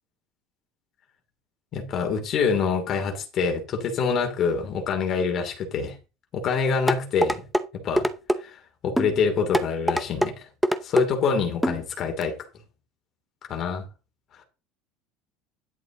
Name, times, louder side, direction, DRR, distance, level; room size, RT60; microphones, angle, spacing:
voice 1, 1.7-6.0 6.3-7.4 7.8-8.1 8.4-10.5 10.8-12.4 13.5-13.8, left 5 dB, 30° left, 2.8 m, -26 dB
sound 1, 6.9-7.6 8.0-8.4 9.0-9.1 9.5-10.3 10.6-11.1 11.6-11.8 12.2-12.3, equal, ahead, 0.6 m, -23 dB
11.0 x 9.3 x 3.9 m
cardioid pair, 170°, 0 cm